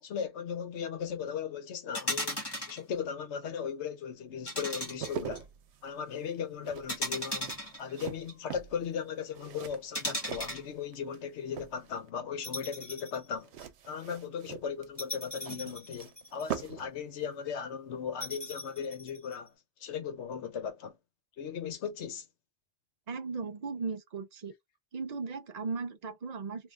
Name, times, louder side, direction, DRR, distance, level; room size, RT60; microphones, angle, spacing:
voice 1, 0.0-2.4 2.7-5.5 5.8-13.5 13.9-19.5 19.8-21.0 21.4-22.2, left 7 dB, 80° left, 1.0 m, -37 dB
sound 1, 1.9-2.8 4.5-5.4 6.9-8.3 9.9-10.7 12.4-13.2 13.6-13.7 15.0-16.6 18.2-19.3, equal, 20° left, 1.5 m, -37 dB
sound 2, 4.7-11.2 11.5-12.1 13.4-16.9 17.2-17.4, right 8 dB, 75° right, 0.9 m, -43 dB
voice 2, 23.1-24.5 24.9-26.7, right 4 dB, 50° right, 0.5 m, -37 dB
3.3 x 2.5 x 2.4 m
omnidirectional pair, 1.2 m